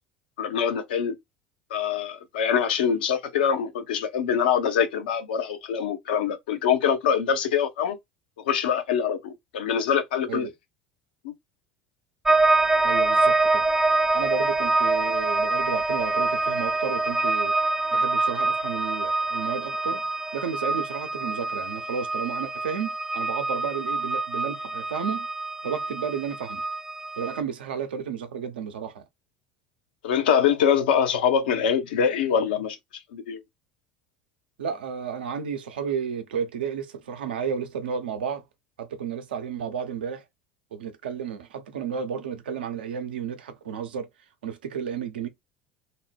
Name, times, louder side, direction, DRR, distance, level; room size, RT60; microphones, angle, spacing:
voice 1, 0.4-1.1 1.7-8.0 8.4-10.5 30.0-33.4, left 7 dB, 65° left, 0.6 m, -24 dB
sound 1, 12.2-27.4, right 2 dB, 10° right, 0.3 m, -25 dB
voice 2, 12.8-13.6 14.1-17.5 17.9-20.0 20.3-25.3 25.6-26.6 27.2-29.0 34.6-38.4 38.8-40.2 40.7-44.1 44.4-45.3, right 7 dB, 70° right, 0.5 m, -32 dB
2.5 x 2.0 x 3.3 m
figure-of-eight pair, 65°, 5 cm